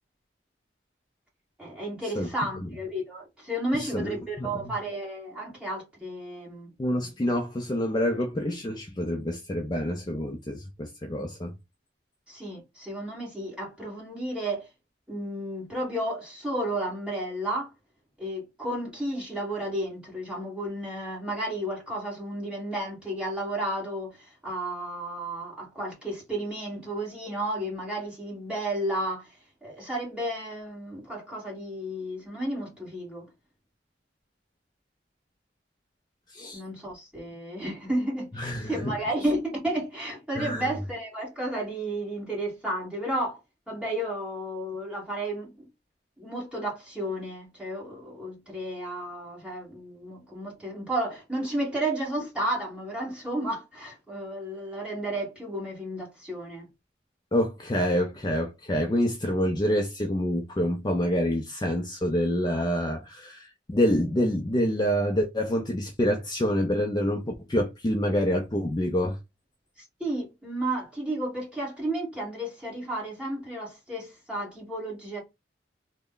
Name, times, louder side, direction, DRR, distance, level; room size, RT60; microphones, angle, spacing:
voice 1, 1.6-6.7 12.3-14.7 15.1-17.7 18.2-29.3 29.6-33.3 36.5-43.4 43.7-45.7 46.2-56.7 69.8-75.2, right 1 dB, 5° right, 1.6 m, -32 dB
voice 2, 3.7-4.7 6.8-11.5 36.3-36.6 38.3-38.9 40.4-40.7 57.3-69.2, equal, 25° left, 0.4 m, -27 dB
3.2 x 2.1 x 3.7 m
head